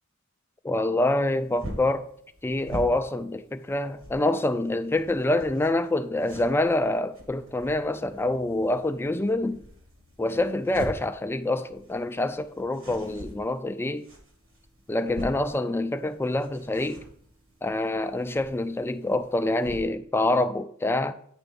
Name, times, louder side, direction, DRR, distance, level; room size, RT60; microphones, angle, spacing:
voice 1, 0.6-2.1 2.4-9.6 10.2-14.1 14.9-17.0 17.6-21.1, left 2 dB, 10° left, 0.3 m, -26 dB
sound 1, 1.0-19.8, equal, 75° right, 1.9 m, -45 dB
9.0 x 3.4 x 5.3 m
head